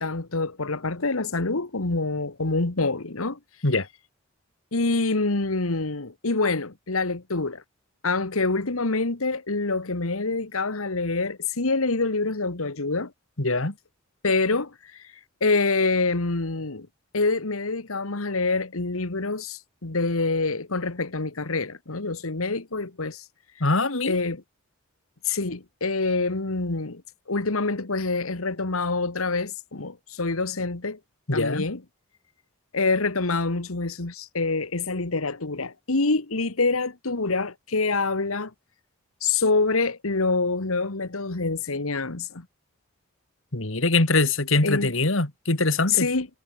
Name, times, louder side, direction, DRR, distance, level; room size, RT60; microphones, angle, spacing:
voice 1, 0.0-3.4 4.7-7.6 8.0-13.1 14.2-14.7 15.4-16.9 17.1-23.2 24.0-24.4 25.2-27.0 27.3-31.0 31.3-31.8 32.7-38.5 39.2-42.4 44.6-44.9 45.9-46.3, left 3 dB, 90° left, 1.7 m, -26 dB
voice 2, 13.4-13.7 23.6-24.2 31.3-31.6 43.5-46.1, left 2 dB, 70° left, 2.5 m, -23 dB
head